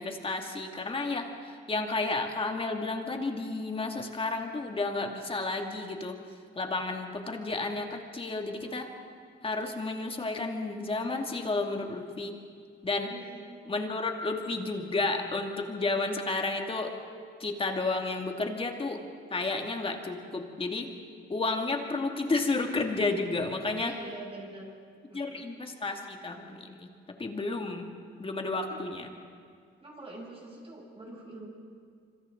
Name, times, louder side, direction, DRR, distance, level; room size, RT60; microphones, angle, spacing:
voice 1, 0.0-6.1 6.6-8.9 9.4-12.3 12.8-13.1 13.7-16.9 17.4-19.0 19.3-20.9 21.3-23.9 25.1-26.9 27.2-27.9 28.2-29.1, left 3 dB, 25° left, 3 dB, 2.4 m, -32 dB
voice 2, 13.1-13.6 23.8-24.7 25.1-25.4 28.6-28.8 29.8-31.5, right 2 dB, 30° right, -4 dB, 7.9 m, -45 dB
27.0 x 25.0 x 3.9 m, 2.1 s
cardioid pair, 90°, 20 cm